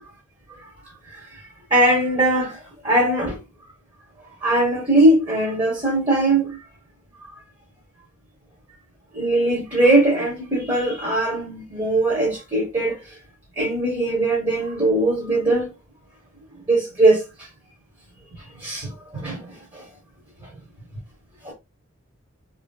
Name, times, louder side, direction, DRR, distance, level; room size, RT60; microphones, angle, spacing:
voice 1, 1.7-3.4 4.2-6.6 9.1-13.0 13.6-15.7 16.7-17.2 18.6-19.5 19.7-19.8 21.4-21.5, right 1 dB, 20° right, 0.8 m, -20 dB
3.0 x 2.6 x 2.2 m
head